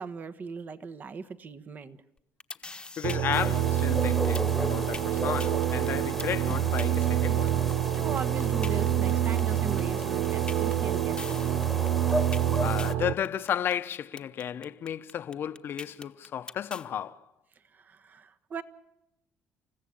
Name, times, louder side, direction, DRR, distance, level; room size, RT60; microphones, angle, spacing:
voice 1, 0.0-2.0 7.9-11.4 17.7-18.6, right 4 dB, 40° right, 1.3 m, -38 dB
sound 1, 2.2-16.9, left 3 dB, 20° left, 1.2 m, -42 dB
voice 2, 3.0-7.6 12.6-17.2, left 9 dB, 55° left, 1.0 m, -33 dB
sound 2, 3.0-13.1, right 11 dB, 85° right, 0.8 m, -27 dB
sound 3, 3.3-12.9, equal, ahead, 1.6 m, -36 dB
28.5 x 15.0 x 8.7 m
cardioid pair, 90°, 5 cm